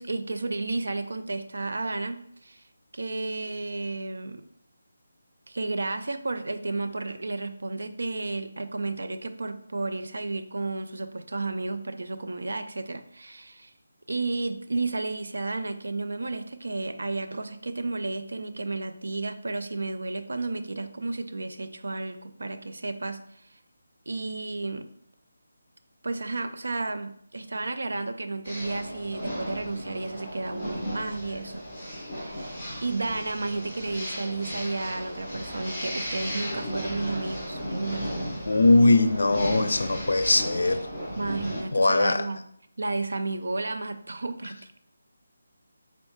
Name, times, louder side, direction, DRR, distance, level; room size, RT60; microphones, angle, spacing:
voice 1, 0.0-2.6 2.9-4.4 5.5-13.7 14.1-23.4 24.1-24.9 26.0-31.6 32.2-38.2 41.2-42.4 42.8-44.8, right 3 dB, 70° right, 10 dB, 0.4 m, -32 dB
sound 1, 28.4-41.6, equal, ahead, 1.3 m, -35 dB
voice 2, 38.5-40.8 41.7-42.2, left 2 dB, 75° left, 10 dB, 0.4 m, -20 dB
4.0 x 3.1 x 3.2 m, 0.68 s
figure-of-eight pair, 180°, 0 cm